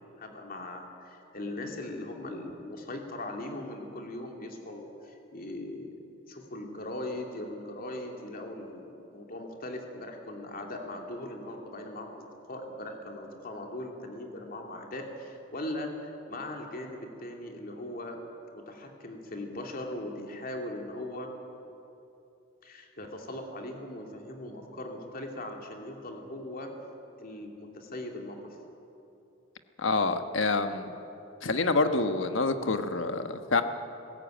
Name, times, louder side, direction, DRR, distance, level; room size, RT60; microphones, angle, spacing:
voice 1, 0.2-5.9 6.3-15.9 16.3-18.2 18.5-21.3 22.6-26.7 27.2-28.4, left 1 dB, 50° left, 2 dB, 2.6 m, -39 dB
voice 2, 29.8-30.9 31.4-33.6, left 3 dB, 80° left, 8 dB, 1.2 m, -27 dB
19.5 x 16.5 x 9.0 m, 2.8 s
head